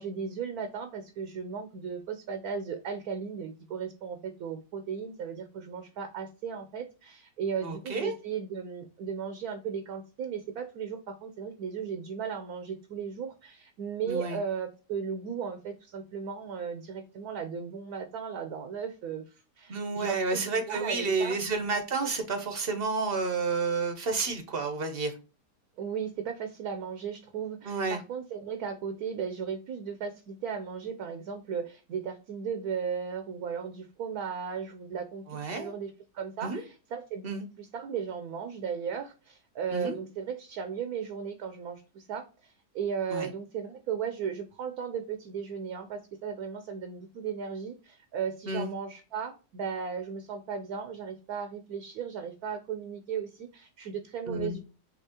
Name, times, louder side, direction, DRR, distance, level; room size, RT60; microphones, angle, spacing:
voice 1, 0.0-19.2 19.6-21.4 25.8-54.6, right 6 dB, 65° right, 7 dB, 1.1 m, -36 dB
voice 2, 7.6-8.1 14.1-14.4 19.7-25.1 27.6-28.0 35.3-35.7 36.4-36.6 37.2-37.5 39.7-40.0 43.1-43.3 48.5-48.7 54.3-54.6, right 4 dB, 45° right, 6 dB, 0.9 m, -30 dB
5.9 x 2.8 x 2.8 m, 0.33 s
omnidirectional pair, 1.8 m